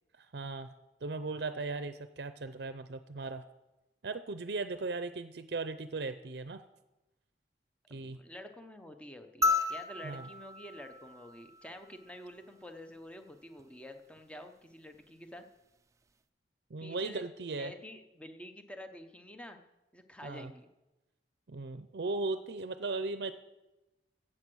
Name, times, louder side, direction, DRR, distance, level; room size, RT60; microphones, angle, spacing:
voice 1, 0.2-0.7 1.0-3.5 4.0-6.6 7.9-8.2 10.0-10.3 16.7-17.7 20.2-20.5 21.5-23.3, right 3 dB, 65° right, 11 dB, 0.6 m, -37 dB
voice 2, 7.9-15.4 16.8-17.2 17.6-19.6 19.9-20.7, left 1 dB, 5° left, 6 dB, 0.8 m, -48 dB
sound 1, 9.4-12.0 13.6-13.7, left 3 dB, 20° right, 0.4 m, -33 dB
15.5 x 7.6 x 6.2 m, 1.0 s
head